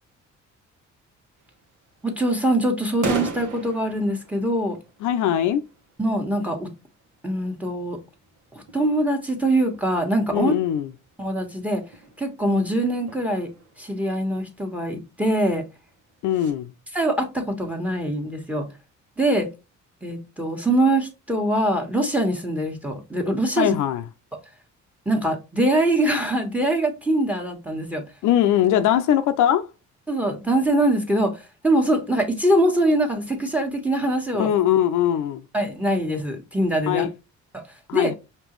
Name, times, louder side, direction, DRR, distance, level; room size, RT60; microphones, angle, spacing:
sound 1, 1.4-16.5, right 3 dB, 80° right, 1.3 m, -40 dB
voice 1, 2.0-4.8 6.0-6.7 7.2-8.0 8.5-10.5 11.2-11.8 12.2-13.5 13.8-15.7 16.9-18.7 19.2-19.5 20.0-23.7 25.0-28.0 30.1-34.5 35.5-37.1 37.5-37.6 37.9-38.1, right 1 dB, 5° right, 1.3 m, -23 dB
voice 2, 5.0-5.6 10.3-10.9 16.2-16.7 23.6-24.0 28.2-29.7 34.3-35.4 36.9-37.1 37.9-38.1, left 10 dB, 80° left, 0.5 m, -21 dB
5.2 x 2.9 x 3.1 m
cardioid pair, 90°, 30 cm